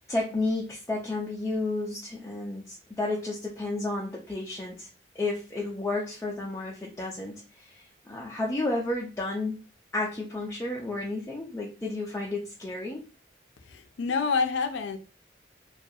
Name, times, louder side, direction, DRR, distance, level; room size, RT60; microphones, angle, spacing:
voice 1, 0.1-4.9 5.1-9.6 9.9-13.0, left 2 dB, 15° left, 0.4 m, -32 dB
voice 2, 13.6-15.0, left 5 dB, 80° left, 0.4 m, -28 dB
2.3 x 2.3 x 2.6 m
head